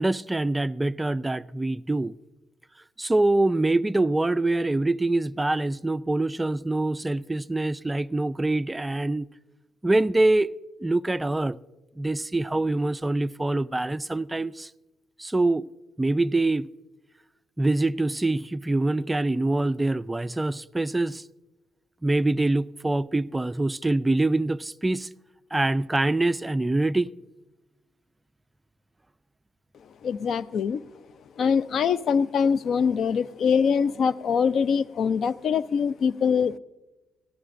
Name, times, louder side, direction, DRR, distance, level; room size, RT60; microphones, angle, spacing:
voice 1, 0.0-2.1 3.0-9.3 9.8-10.5 10.8-11.6 12.0-14.7 15.2-15.6 16.0-16.7 17.6-21.3 22.0-25.1 25.5-27.1, right 2 dB, 15° right, 0.3 m, -24 dB
voice 2, 30.0-30.8 31.4-36.6, left 6 dB, 60° left, 0.4 m, -23 dB
18.0 x 14.0 x 2.5 m
cardioid pair, 90°, 0 cm